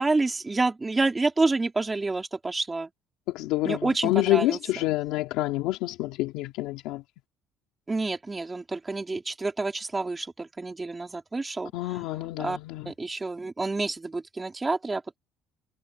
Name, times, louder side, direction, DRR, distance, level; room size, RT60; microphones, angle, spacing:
voice 1, 0.0-2.9 3.6-4.6 7.9-12.0 12.4-12.6 12.8-15.2, right 3 dB, 15° right, 3.3 m, -28 dB
voice 2, 3.3-7.0 11.7-12.9, left 17 dB, 90° left, 2.4 m, -27 dB
cardioid pair, 145°, 0 cm